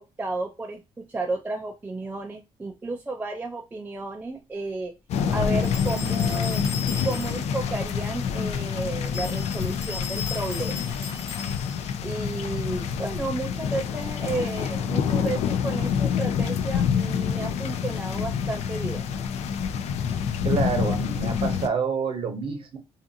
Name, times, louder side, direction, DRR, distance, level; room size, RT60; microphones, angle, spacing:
voice 1, 0.0-4.9 5.3-6.6 7.0-10.9 12.0-19.1, right 3 dB, 15° right, 0.3 m, -32 dB
sound 1, 5.1-21.7, left 7 dB, 75° left, 0.4 m, -27 dB
sound 2, 5.6-7.6 9.0-11.9, left 6 dB, 25° left, 0.9 m, -37 dB
voice 2, 20.4-22.8, right 5 dB, 55° right, 0.8 m, -28 dB
2.6 x 2.4 x 2.5 m
cardioid pair, 125°, 11 cm